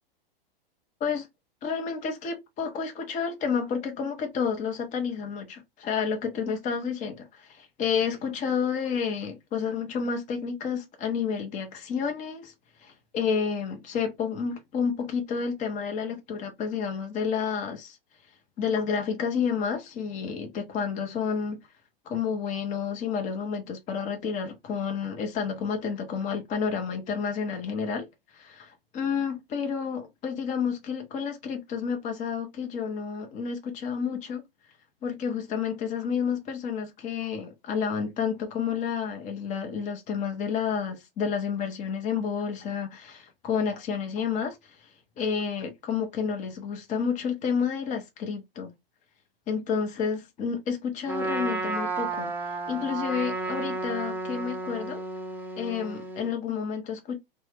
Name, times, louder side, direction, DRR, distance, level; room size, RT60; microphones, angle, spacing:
voice 1, 1.6-12.5 12.8-18.0 18.6-21.6 22.1-28.1 28.3-34.4 35.0-44.6 45.2-48.7 49.5-52.3 52.7-55.0 55.6-57.2, left 6 dB, 25° left, 0.7 m, -30 dB
Trumpet, 51.1-56.3, right 2 dB, 5° right, 0.5 m, -32 dB
2.6 x 2.2 x 3.2 m
hypercardioid pair, 105°, 29 cm